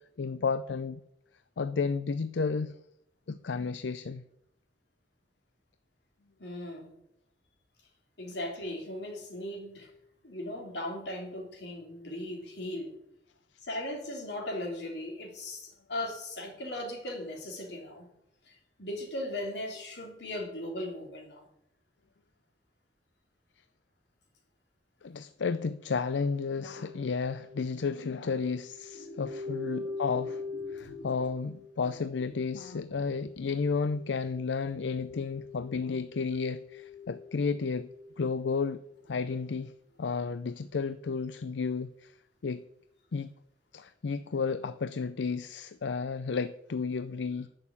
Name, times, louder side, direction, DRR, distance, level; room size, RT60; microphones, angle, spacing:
voice 1, 0.2-1.0 1.6-2.7 3.3-4.2 25.0-30.4 30.7-37.9 38.2-38.8 39.1-39.7 40.0-42.1 42.4-42.6 43.1-43.3 43.7-47.5, left 5 dB, 85° left, 0.5 m, -32 dB
voice 2, 6.4-6.9 8.2-9.9 10.2-12.9 13.6-18.1 18.5-21.4 28.9-31.3 31.8-31.9, left 1 dB, 70° left, 3.3 m, -38 dB
sound 1, 26.6-38.6 38.9-39.0, left 4 dB, 45° right, 4.9 m, -44 dB
11.5 x 6.6 x 8.4 m
head